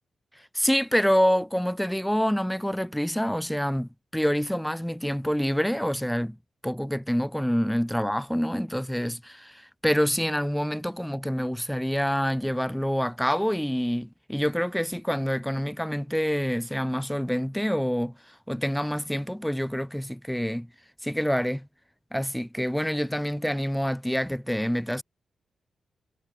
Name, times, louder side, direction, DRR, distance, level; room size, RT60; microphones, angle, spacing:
voice 1, 0.5-6.4 6.6-20.7 21.0-21.7 22.1-25.0, equal, ahead, 7.2 m, -27 dB
cardioid pair, 70°, 0 cm